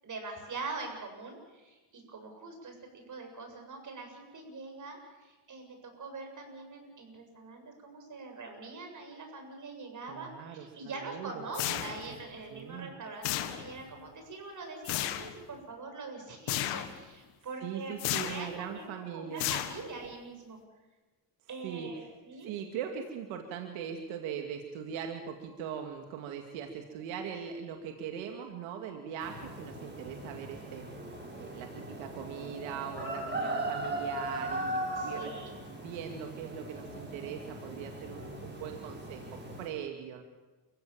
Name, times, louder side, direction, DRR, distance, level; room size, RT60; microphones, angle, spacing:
voice 1, 0.0-2.8 3.1-18.0 18.2-20.6 21.5-22.5 35.0-35.5, right 3 dB, 40° right, 4 dB, 7.8 m, -43 dB
voice 2, 10.1-12.2 12.5-12.9 17.6-19.5 21.6-22.1 22.4-31.0 31.4-35.3 35.7-40.2, right 8 dB, 90° right, 4 dB, 2.4 m, -41 dB
sound 1, 11.5-12.2 13.2-13.9 14.8-15.4 16.5-17.0 18.0-18.5 19.4-20.1, left 13 dB, 85° left, 1.9 m, -33 dB
sound 2, 29.2-39.7, right 1 dB, 25° right, 6.8 m, -39 dB
29.0 x 16.5 x 7.5 m, 1.2 s
cardioid pair, 100°, 45 cm